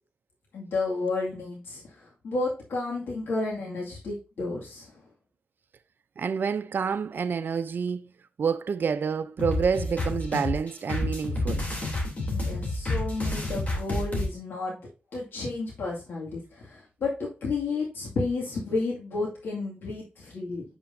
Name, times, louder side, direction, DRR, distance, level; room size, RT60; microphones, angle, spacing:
voice 1, 0.5-4.9 12.3-14.8 15.1-20.6, left 3 dB, 85° left, 2.2 m, -32 dB
voice 2, 6.2-8.0 8.4-11.7, right 6 dB, 65° right, 0.5 m, -28 dB
sound 1, 9.4-14.3, left 2 dB, 40° left, 3.1 m, -29 dB
7.9 x 5.6 x 2.6 m
cardioid pair, 70°, 4 cm